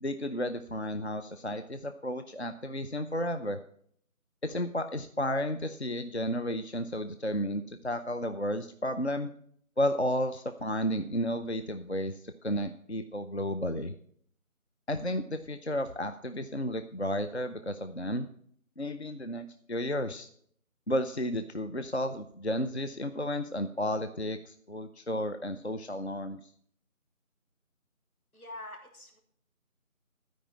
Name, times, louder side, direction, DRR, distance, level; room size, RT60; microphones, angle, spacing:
voice 1, 0.0-3.6 4.4-9.3 9.8-13.9 14.9-18.3 18.8-20.3 20.9-26.4, equal, 50° left, 8 dB, 0.6 m, -32 dB
voice 2, 28.3-29.2, left 2 dB, 85° left, 3 dB, 3.1 m, -45 dB
13.0 x 5.2 x 8.5 m, 0.63 s
figure-of-eight pair, 175°, 42 cm